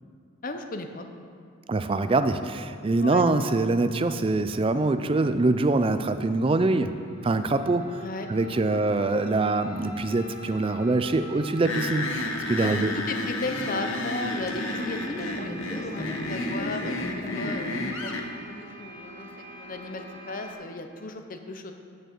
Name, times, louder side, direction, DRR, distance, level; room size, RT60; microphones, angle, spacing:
voice 1, 0.4-1.1 3.0-3.2 8.0-8.3 8.7-8.8 12.6-18.2 18.4-21.7, left 2 dB, 40° left, 6 dB, 0.7 m, -35 dB
voice 2, 1.7-6.9 7.2-8.0 8.3-12.9, right 2 dB, 25° right, 10 dB, 0.3 m, -24 dB
sound 1, 6.3-20.5, equal, 60° right, 2.0 m, -44 dB
sound 2, 11.7-18.3, left 2 dB, 60° left, 0.9 m, -31 dB
sound 3, 12.0-18.1, left 1 dB, 15° left, 0.9 m, -41 dB
9.0 x 6.4 x 6.6 m, 2.2 s
head